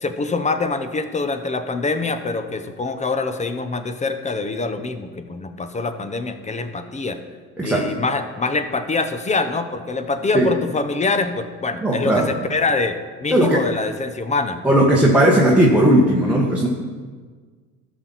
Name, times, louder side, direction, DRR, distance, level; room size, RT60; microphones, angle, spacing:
voice 1, 0.0-7.2 7.6-14.6, left 3 dB, 20° left, 9 dB, 0.7 m, -24 dB
voice 2, 11.8-12.3 13.3-13.7 14.6-16.7, right 1 dB, 5° right, -3 dB, 1.4 m, -16 dB
13.0 x 6.3 x 4.1 m, 1.5 s
supercardioid pair, 95°, 38 cm